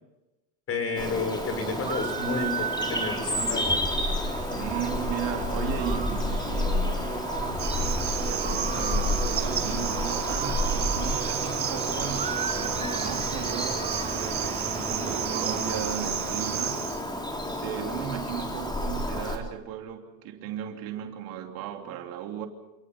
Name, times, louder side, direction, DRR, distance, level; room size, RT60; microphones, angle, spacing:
voice 1, 0.7-3.7, left 3 dB, 35° left, 7 dB, 6.1 m, -31 dB
Bird vocalization bird call bird song, 1.0-19.4, left 1 dB, 10° left, 3.6 m, -31 dB
sound 1, 1.0-15.8, right 6 dB, 20° right, 1.1 m, -36 dB
voice 2, 4.6-7.4 8.2-16.9 17.5-22.5, right 10 dB, 65° right, 4 dB, 3.1 m, -36 dB
Cricket, 7.6-17.0, right 8 dB, 35° right, 6.1 m, -32 dB
28.5 x 18.0 x 5.7 m, 1.0 s
supercardioid pair, 115°, 38 cm